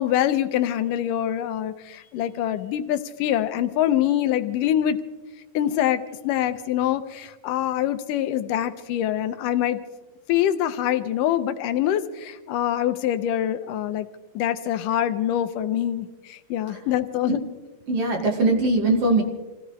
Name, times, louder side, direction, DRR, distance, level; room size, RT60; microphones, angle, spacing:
voice 1, 0.0-5.0 5.5-9.8 10.3-14.1 14.4-17.4, left 11 dB, 80° left, 11 dB, 2.2 m, -24 dB
voice 2, 17.9-19.2, right 2 dB, 50° right, 1 dB, 2.6 m, -21 dB
27.5 x 17.0 x 3.1 m, 1.2 s
omnidirectional pair, 3.9 m